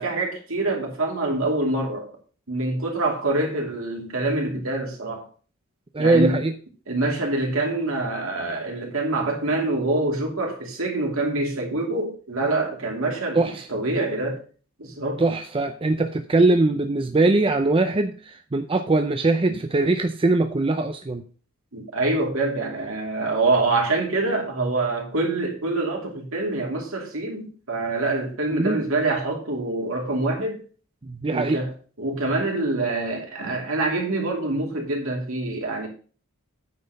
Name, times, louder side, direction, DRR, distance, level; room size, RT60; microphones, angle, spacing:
voice 1, 0.0-2.0 2.5-5.3 6.0-6.4 6.9-14.4 14.8-15.2 21.7-30.6 31.3-31.7 32.0-35.9, right 2 dB, 65° right, 2.7 m, -25 dB
voice 2, 5.9-6.5 13.4-13.7 15.2-21.2 28.5-28.8 31.0-31.6, right 2 dB, 25° right, 0.5 m, -21 dB
9.3 x 4.3 x 6.6 m
head